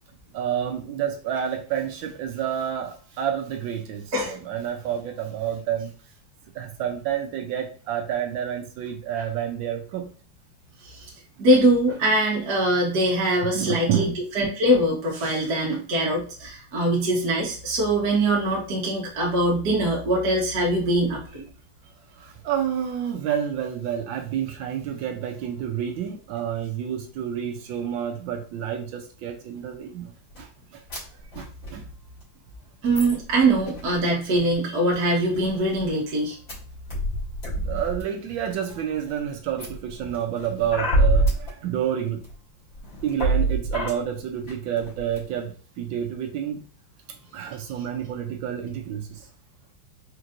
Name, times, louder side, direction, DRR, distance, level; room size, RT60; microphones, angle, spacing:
voice 1, 0.3-5.9 6.5-10.1 13.4-14.1 22.2-30.8 31.3-31.8 37.6-42.2 43.0-46.6 47.1-49.3, right 9 dB, 75° right, 4 dB, 1.3 m, -29 dB
voice 2, 11.4-21.4 32.8-36.4, right 1 dB, 55° right, -3 dB, 1.4 m, -22 dB
sound 1, 30.3-30.4 30.9-31.0 31.2-31.7 32.2-32.3 32.8-34.0 34.4-34.5 34.9-35.0 35.3-35.9 36.5-36.6 36.9-38.0 38.5-39.0 39.6-41.5 42.2-42.3 42.7-43.9 44.5-44.6 44.8-45.2, right 1 dB, 40° left, 2.3 m, -26 dB
4.4 x 3.0 x 2.5 m, 0.39 s
omnidirectional pair, 2.3 m